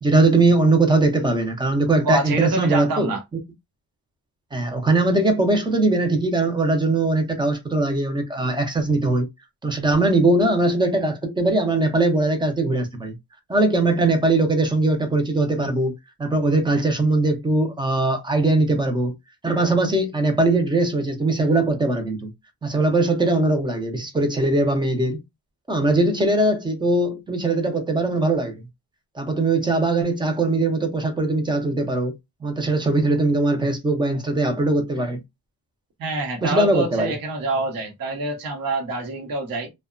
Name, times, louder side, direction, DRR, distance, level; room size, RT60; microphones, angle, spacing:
voice 1, 0.0-3.2 4.5-9.3 9.6-13.2 13.5-19.1 19.4-22.3 22.6-25.2 25.7-28.7 29.1-32.1 32.4-35.2 36.4-37.1, right 2 dB, 10° right, 0.4 m, -20 dB
voice 2, 2.0-3.2 36.0-39.7, right 3 dB, 60° right, 0.8 m, -26 dB
2.8 x 2.1 x 2.3 m
wide cardioid pair, 170°, 40 cm